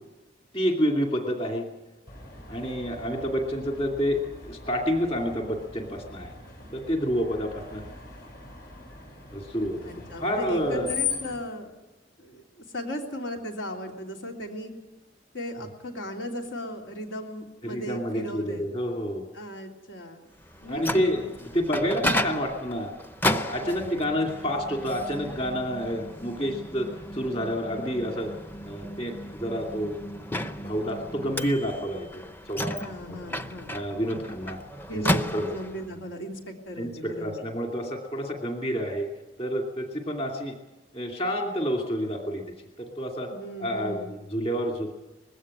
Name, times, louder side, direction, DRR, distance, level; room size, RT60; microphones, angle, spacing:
voice 1, 0.5-1.6 2.5-6.3 6.7-7.8 9.3-9.8 10.2-10.9 17.6-19.3 20.7-22.9 23.2-26.9 27.1-28.3 28.6-30.3 30.6-32.9 33.7-34.6 34.9-35.0 35.3-35.5 36.8-39.1 39.4-40.5 40.9-42.4 42.8-43.3 43.6-44.9, equal, 30° left, 2 dB, 2.6 m, -29 dB
Screech, 2.1-11.4, left 6 dB, 55° left, 6.6 m, -39 dB
voice 2, 9.8-11.7 12.2-14.7 15.3-18.7 19.3-20.3 20.6-21.6 23.6-24.1 32.8-34.0 34.9-37.4 43.3-44.2, equal, 80° left, 2 dB, 3.2 m, -37 dB
Microwave oven, 20.5-35.9, left 1 dB, 10° left, 0.6 m, -33 dB
20.5 x 16.5 x 9.8 m, 1.1 s
head